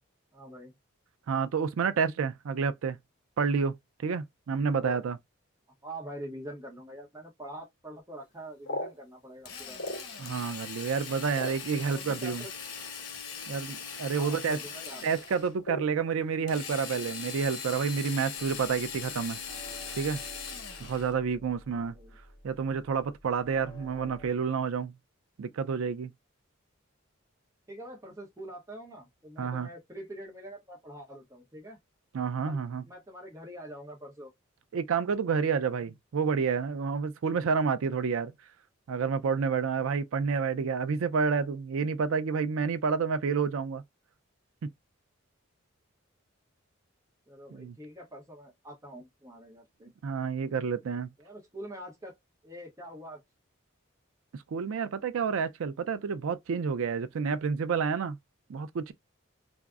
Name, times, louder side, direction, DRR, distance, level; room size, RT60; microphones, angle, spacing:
voice 1, 0.3-0.7 4.8-5.0 5.8-9.8 11.7-12.5 14.2-15.0 21.7-22.2 27.7-31.8 32.4-34.3 47.3-49.9 51.2-52.1 52.4-53.2, right 1 dB, 15° right, 0.7 m, -45 dB
voice 2, 1.3-3.0 3.4-3.8 4.0-5.2 10.2-12.4 13.5-14.6 15.0-19.4 20.0-20.2 20.8-21.9 22.4-24.9 25.4-26.1 29.4-29.7 32.1-32.8 34.7-38.3 38.9-43.8 47.5-47.7 50.0-51.1 54.3-58.2 58.5-58.9, right 6 dB, 80° right, 0.4 m, -29 dB
sound 1, 8.3-10.4 10.8-12.2 13.0-13.1 13.4-13.7 14.0-14.4 14.7-15.0 15.6-16.6 16.9-17.8 18.0-18.1 18.5-18.8 19.3-19.7, equal, 55° left, 1.4 m, -40 dB
Drill, 9.4-15.5 16.5-21.1, left 6 dB, 90° left, 0.9 m, -40 dB
sound 2, 18.4-24.3, equal, 25° left, 1.3 m, -51 dB
3.5 x 2.0 x 2.3 m
head